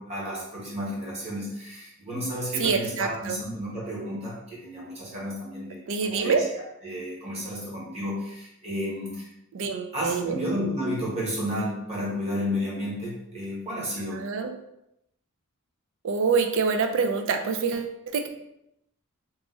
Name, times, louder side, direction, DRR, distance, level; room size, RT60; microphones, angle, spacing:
voice 1, 0.0-6.4 6.8-9.3 9.9-14.2, equal, 30° right, -6 dB, 1.3 m, -32 dB
voice 2, 2.6-3.4 5.9-6.4 9.5-10.4 14.1-14.6 16.0-18.3, right 5 dB, 60° right, 6 dB, 0.4 m, -26 dB
2.9 x 2.4 x 3.7 m, 0.82 s
head